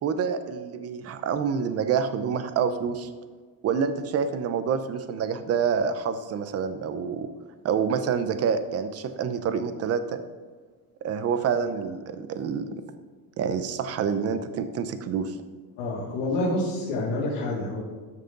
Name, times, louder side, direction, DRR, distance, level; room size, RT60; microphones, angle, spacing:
voice 1, 0.0-3.1 3.6-7.3 7.6-10.2 11.0-12.7 13.4-15.4, right 6 dB, 35° right, 10 dB, 0.7 m, -27 dB
voice 2, 15.8-17.8, left 2 dB, 85° left, -8 dB, 2.7 m, -28 dB
13.0 x 6.4 x 3.9 m, 1.5 s
cardioid pair, 155°, 40 cm